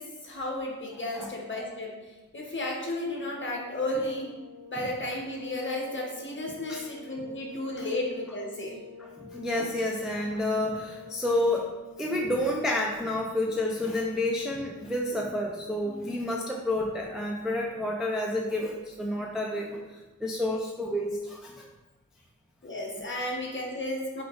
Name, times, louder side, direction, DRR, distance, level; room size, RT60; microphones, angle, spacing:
voice 1, 0.0-4.3 4.7-8.8 15.8-16.0 22.6-24.2, left 1 dB, 35° left, -1 dB, 0.9 m, -33 dB
sound 1, 3.2-14.3, left 5 dB, 75° right, 1.3 m, -49 dB
voice 2, 9.0-11.7 12.0-19.8 20.2-21.7, left 1 dB, ahead, -1 dB, 0.3 m, -30 dB
3.7 x 3.4 x 3.7 m, 1.2 s
wide cardioid pair, 125°, 35 cm